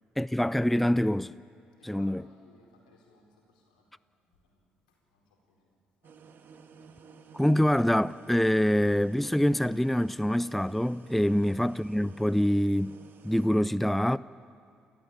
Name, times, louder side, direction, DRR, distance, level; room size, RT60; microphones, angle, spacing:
voice 1, 0.2-1.3 1.8-2.2 7.3-13.0 13.2-14.2, equal, 5° left, 0.4 m, -25 dB
voice 2, 1.7-3.9 4.2-5.7 6.0-6.2 6.8-7.5 11.2-11.3, left 3 dB, 85° left, 4.4 m, -63 dB
sound 1, 6.0-13.5, right 5 dB, 55° right, 1.8 m, -53 dB
28.5 x 14.0 x 8.7 m
hypercardioid pair, 50°, 4 cm